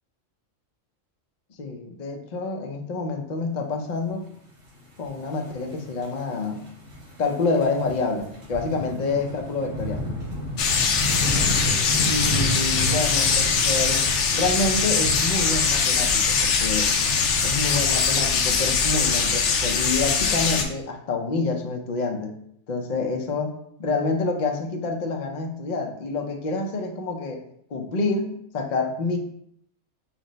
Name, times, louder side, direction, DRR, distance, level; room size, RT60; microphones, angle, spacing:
voice 1, 1.6-4.2 5.0-6.6 7.2-10.0 12.1-16.9 17.4-22.4 22.7-27.4 27.7-29.2, left 3 dB, 45° left, 3 dB, 0.6 m, -27 dB
sound 1, 4.8-19.2, equal, 90° right, 2.2 m, -33 dB
sound 2, 10.6-20.6, left 5 dB, 70° left, 0.9 m, -22 dB
5.9 x 2.1 x 3.9 m, 0.69 s
omnidirectional pair, 1.3 m